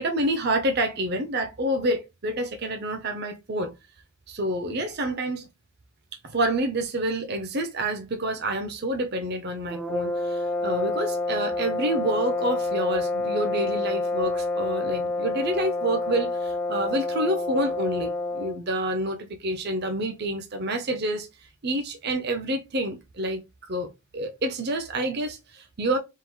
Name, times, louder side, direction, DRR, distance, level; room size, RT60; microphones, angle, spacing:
voice 1, 0.0-3.7 4.3-5.5 6.2-21.3 21.6-26.0, right 1 dB, 45° right, 0.7 m, -28 dB
sound 1, 9.7-18.7, left 2 dB, 5° left, 0.3 m, -28 dB
4.6 x 3.8 x 2.2 m
head